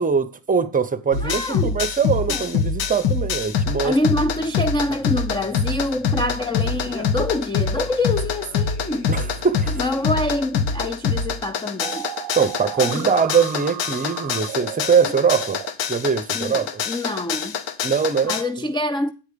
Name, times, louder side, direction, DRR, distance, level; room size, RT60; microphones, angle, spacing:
voice 1, 0.0-4.0 9.1-9.8 12.4-15.6 15.9-16.8 17.8-18.4, right 6 dB, 20° right, 0.8 m, -22 dB
sound 1, 1.1-18.4, left 6 dB, 80° left, 1.0 m, -25 dB
voice 2, 1.2-1.8 2.3-2.5 3.8-9.1 9.7-12.1 12.8-13.1 16.3-17.6 18.2-19.1, left 2 dB, 10° left, 0.4 m, -26 dB
Singing, 4.2-10.3, left 2 dB, 30° left, 2.7 m, -44 dB
sound 2, 11.8-15.7, right 18 dB, 60° right, 0.5 m, -34 dB
9.0 x 4.8 x 6.8 m
cardioid pair, 95°, 43 cm